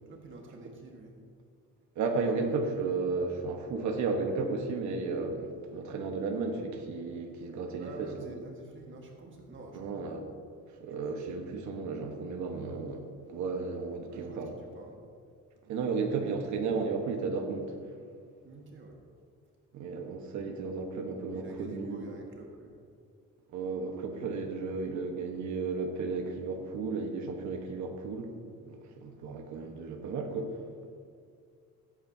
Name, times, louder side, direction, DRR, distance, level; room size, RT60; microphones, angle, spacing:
voice 1, 0.1-1.2 7.8-10.0 11.0-11.3 14.1-15.0 18.4-19.0 21.3-22.8, right 2 dB, 40° right, 1 dB, 1.4 m, -48 dB
voice 2, 1.9-8.1 9.7-10.2 10.8-14.5 15.7-17.7 19.7-22.1 23.5-28.3 28.6-30.6, right 4 dB, 70° right, 2 dB, 1.2 m, -34 dB
16.0 x 8.8 x 2.7 m, 2.2 s
cardioid pair, 115°, 30 cm